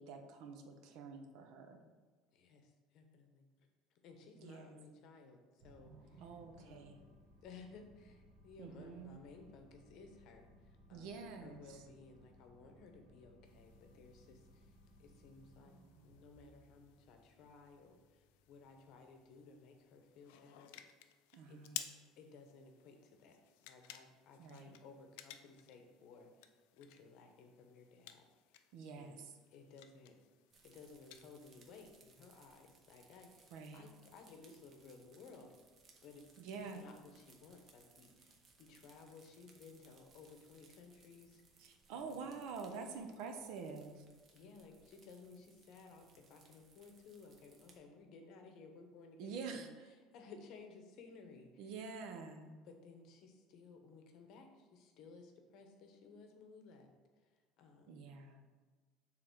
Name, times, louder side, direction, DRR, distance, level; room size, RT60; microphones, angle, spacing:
voice 1, 0.0-1.8 4.4-4.8 6.2-7.0 8.6-9.2 10.9-11.8 21.3-21.8 24.4-24.8 28.7-29.4 33.5-33.9 36.4-36.8 41.6-44.1 49.2-49.7 51.6-52.5 57.9-58.5, right 5 dB, 60° right, 5 dB, 0.7 m, -47 dB
voice 2, 2.3-7.1 7.4-14.7 15.0-20.8 21.5-21.6 22.2-23.4 23.6-28.6 28.9-29.2 29.5-30.2 30.6-35.6 36.0-36.3 36.7-42.3 44.3-51.7 52.6-56.9 57.2-58.0, left 4 dB, 50° left, 4 dB, 0.8 m, -58 dB
sound 1, 5.6-20.1, right 1 dB, 85° right, 1.5 m, -64 dB
sound 2, 13.4-31.9, left 12 dB, 80° left, 0.4 m, -56 dB
sound 3, 30.5-47.8, right 4 dB, 30° right, 0.8 m, -67 dB
6.7 x 3.7 x 4.5 m, 1.4 s
cardioid pair, 165°, 0 cm